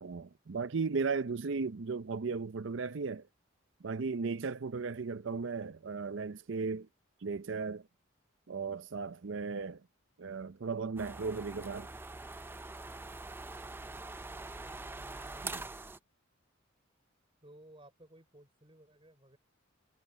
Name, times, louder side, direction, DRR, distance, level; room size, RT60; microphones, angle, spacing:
voice 1, 0.0-3.3 3.8-6.9 7.2-7.8 8.5-9.8 10.2-11.9 15.4-15.6, right 4 dB, 65° right, 0.6 m, -36 dB
sound 1, 11.0-16.0, right 3 dB, 10° right, 0.4 m, -44 dB
voice 2, 14.4-14.8 17.4-19.4, right 1 dB, 25° right, 5.0 m, -58 dB
head